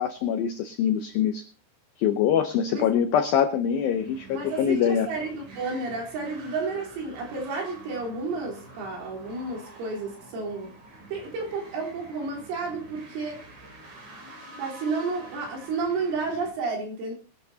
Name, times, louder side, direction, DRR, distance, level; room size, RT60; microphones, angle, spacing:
voice 1, 0.0-1.5 2.0-5.1, left 8 dB, 90° left, 7 dB, 2.0 m, -24 dB
sound 1, 3.6-16.5, right 2 dB, 40° right, 3.9 m, -47 dB
voice 2, 4.3-10.7 11.1-13.4 14.6-17.2, right 4 dB, 85° right, -2 dB, 6.5 m, -31 dB
22.5 x 10.5 x 2.8 m, 0.35 s
omnidirectional pair, 5.4 m